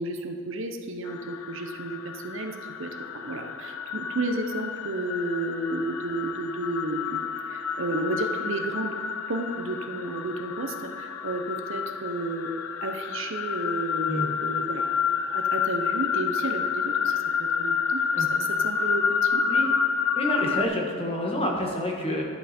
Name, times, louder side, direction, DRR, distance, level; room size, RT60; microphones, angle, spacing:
voice 1, 0.0-9.0 9.3-12.5 12.8-19.5, right 2 dB, 60° right, 5 dB, 0.8 m, -32 dB
sound 1, 1.1-20.6, left 6 dB, 75° left, 0.6 m, -29 dB
voice 2, 20.2-22.2, equal, 25° left, 0 dB, 1.4 m, -28 dB
11.0 x 7.9 x 4.3 m, 2.3 s
head